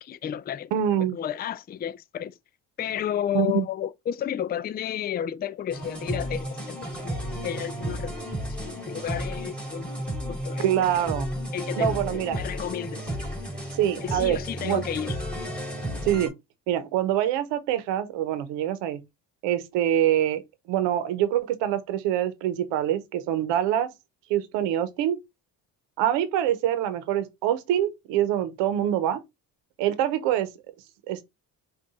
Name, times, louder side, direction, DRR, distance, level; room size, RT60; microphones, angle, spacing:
voice 1, 0.0-0.7 1.1-2.3 2.8-7.1 7.4-8.1 8.5-9.9 10.3-10.7 11.5-11.9 12.3-13.1 14.0-15.1, left 10 dB, 25° left, 0.3 m, -32 dB
voice 2, 0.7-1.2 3.3-3.7 10.6-11.3 11.8-12.4 13.7-14.8 16.0-16.3 16.7-19.0 19.4-20.4 20.7-23.9 24.3-25.2 26.0-29.2 29.8-30.5 31.1-31.2, right 11 dB, 85° right, 1.0 m, -25 dB
sound 1, 5.7-16.3, equal, ahead, 2.6 m, -33 dB
5.6 x 2.6 x 3.6 m
supercardioid pair, 75°, 42 cm